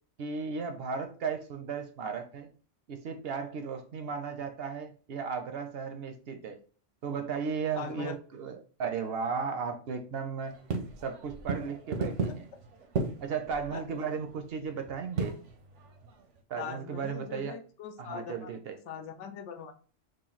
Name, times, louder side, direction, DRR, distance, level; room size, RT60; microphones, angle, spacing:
voice 1, 0.2-2.5 2.9-6.6 7.0-10.6 11.0-12.5 13.2-15.4 16.5-17.6 18.0-18.8, right 6 dB, 65° right, 7 dB, 0.7 m, -35 dB
voice 2, 7.8-8.2 12.3-12.4 13.7-14.1 16.6-18.5 18.9-19.7, left 7 dB, 80° left, 8 dB, 0.9 m, -41 dB
sound 1, 10.5-16.4, right 4 dB, 80° right, 1.0 m, -36 dB
3.1 x 2.6 x 3.9 m, 0.41 s
omnidirectional pair, 1.2 m